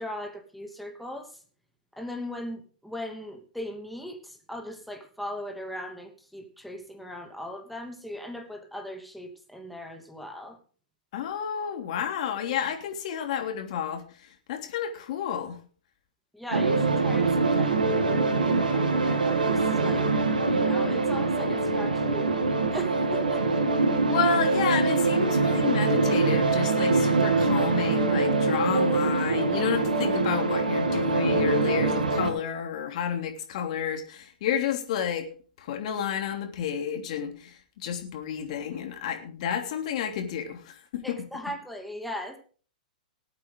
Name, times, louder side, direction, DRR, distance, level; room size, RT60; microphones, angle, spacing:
voice 1, 0.0-1.4 2.0-10.6 16.3-23.6 41.0-42.4, left 1 dB, ahead, 3 dB, 2.6 m, -39 dB
voice 2, 11.1-15.6 24.1-35.3 35.6-41.2, left 7 dB, 50° left, 4 dB, 3.2 m, -30 dB
sound 1, 16.5-32.3, right 3 dB, 80° right, 2.8 m, -24 dB
20.0 x 8.5 x 3.9 m, 0.40 s
hypercardioid pair, 115°, 5 cm